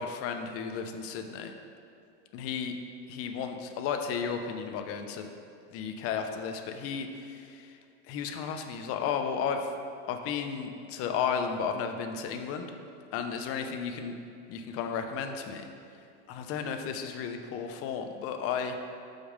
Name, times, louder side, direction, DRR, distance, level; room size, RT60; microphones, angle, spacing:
voice 1, 0.0-1.5 2.3-2.7 3.1-5.3 5.7-7.7 8.1-9.7 10.1-12.7 13.1-14.1 14.5-15.6 16.3-18.8, left 6 dB, 40° left, 5 dB, 0.7 m, -33 dB
6.1 x 5.3 x 5.2 m, 2.4 s
supercardioid pair, 130°, 34 cm